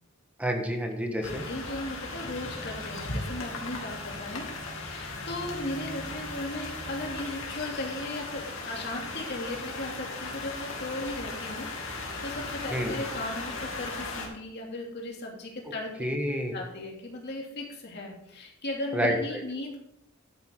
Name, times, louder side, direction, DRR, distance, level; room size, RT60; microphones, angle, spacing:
voice 1, 0.4-1.4 12.7-12.9 16.0-16.5 18.9-19.4, equal, 5° right, 3 dB, 1.5 m, -29 dB
voice 2, 1.1-16.1 16.5-19.8, left 1 dB, 55° left, -1 dB, 2.9 m, -37 dB
sound 1, 1.2-14.3, left 3 dB, 80° left, 2.6 m, -37 dB
11.0 x 9.4 x 3.9 m, 0.78 s
head